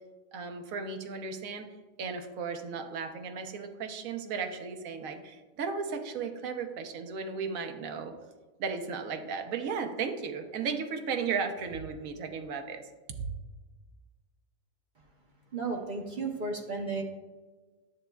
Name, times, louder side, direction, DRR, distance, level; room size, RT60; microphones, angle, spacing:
voice 1, 0.3-1.7 2.0-8.1 8.6-12.8 13.2-13.3, right 5 dB, 75° right, 6 dB, 1.1 m, -35 dB
voice 2, 15.5-17.0, right 3 dB, 45° right, 2 dB, 0.8 m, -33 dB
10.0 x 7.0 x 2.2 m, 1.3 s
omnidirectional pair, 1.5 m